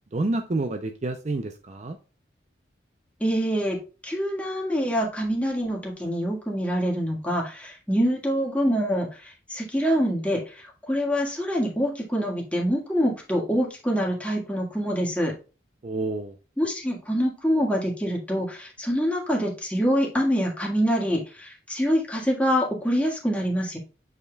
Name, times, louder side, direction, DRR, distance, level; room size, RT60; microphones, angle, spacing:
voice 1, 0.1-2.0 15.8-16.3, right 2 dB, 40° right, 7 dB, 0.5 m, -28 dB
voice 2, 3.2-15.3 16.6-23.8, equal, 5° left, -2 dB, 1.7 m, -25 dB
8.1 x 5.1 x 2.3 m, 0.33 s
head